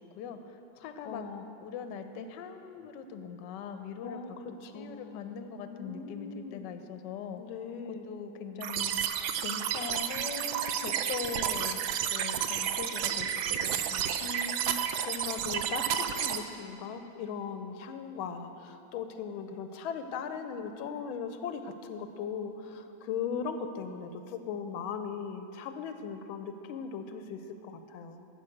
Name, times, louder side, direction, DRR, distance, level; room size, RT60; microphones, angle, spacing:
voice 1, 0.2-1.3 1.6-7.4 7.9-9.0 9.4-14.1, left 6 dB, 70° left, 7 dB, 1.2 m, -41 dB
voice 2, 1.0-1.5 4.0-4.3 4.6-5.2 5.6-6.7 7.4-8.1 14.2-28.3, left 6 dB, 90° left, 8 dB, 1.4 m, -39 dB
sound 1, 8.6-16.4, right 9 dB, 75° right, 0.9 m, -31 dB
12.0 x 5.1 x 7.8 m, 2.8 s
omnidirectional pair, 2.2 m